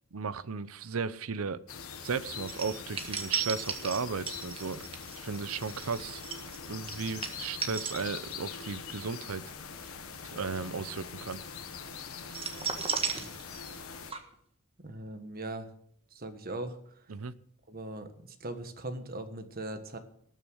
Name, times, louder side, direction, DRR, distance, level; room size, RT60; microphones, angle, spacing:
voice 1, 0.1-1.6 2.0-4.8 5.2-6.2 6.7-9.5 10.2-11.4 17.1-17.3, right 5 dB, 85° right, 16 dB, 0.7 m, -35 dB
sound 1, 1.7-14.1, left 6 dB, 85° left, 1.4 m, -43 dB
sound 2, 2.5-8.6 8.9-9.1 12.3-13.8 14.1-14.2, right 6 dB, 25° right, 1.5 m, -35 dB
voice 2, 14.8-15.7 16.1-16.8 17.7-20.0, right 2 dB, 45° right, 8 dB, 1.4 m, -39 dB
18.5 x 6.7 x 6.3 m, 0.67 s
head